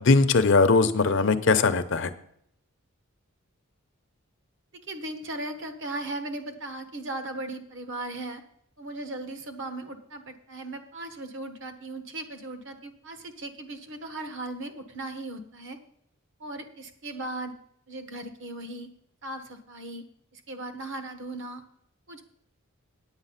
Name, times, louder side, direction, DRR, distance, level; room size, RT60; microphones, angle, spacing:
voice 1, 0.0-2.1, left 3 dB, 55° left, 10 dB, 0.7 m, -20 dB
voice 2, 4.9-8.4 8.8-15.8 16.4-17.5 17.9-18.9 19.2-20.0 20.3-21.6 22.1-22.2, right 2 dB, 55° right, 7 dB, 1.3 m, -37 dB
8.9 x 8.8 x 5.7 m, 0.69 s
head